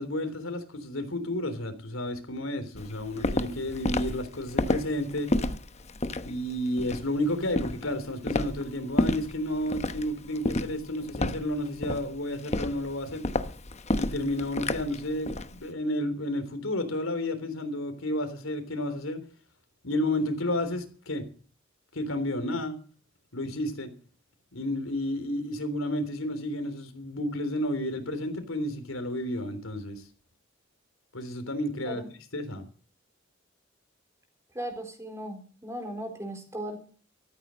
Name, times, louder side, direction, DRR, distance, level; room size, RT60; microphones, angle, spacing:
voice 1, 0.0-5.3 6.2-13.2 14.0-19.2 19.8-21.2 21.9-22.7 23.3-23.9 24.5-30.0 31.1-32.0 32.3-32.7, left 1 dB, 85° left, 3.5 m, -31 dB
Walk footsteps, 2.7-15.5, left 2 dB, 35° left, 1.0 m, -30 dB
voice 2, 34.5-36.8, right 1 dB, 15° right, 3.9 m, -37 dB
14.0 x 14.0 x 6.4 m
head